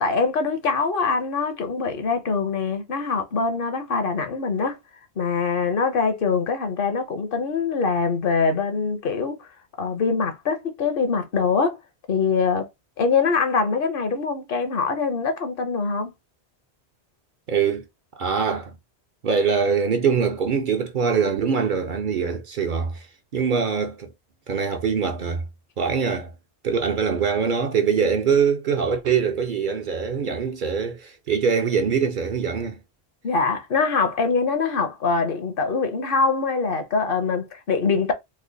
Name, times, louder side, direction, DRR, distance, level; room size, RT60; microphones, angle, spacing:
voice 1, 0.0-4.8 5.2-9.5 9.8-11.8 12.1-12.7 13.0-16.1 33.2-38.1, left 4 dB, 60° left, 0.8 m, -23 dB
voice 2, 17.5-17.9 18.2-18.7 19.2-23.1 23.3-24.1 24.5-25.4 25.8-26.3 26.6-32.8, right 6 dB, 55° right, 0.7 m, -23 dB
3.3 x 2.1 x 3.7 m
omnidirectional pair, 1.1 m